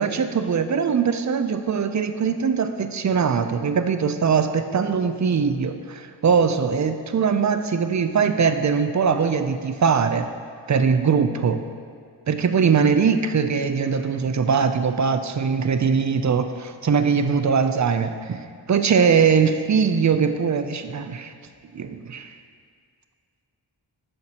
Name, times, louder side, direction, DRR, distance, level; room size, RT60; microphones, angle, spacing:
voice 1, 0.0-10.3 10.7-11.6 12.3-18.4 18.7-21.3 21.7-22.3, right 6 dB, 40° right, 9 dB, 0.4 m, -21 dB
8.7 x 6.4 x 2.8 m, 2.1 s
wide cardioid pair, 50°, 47 cm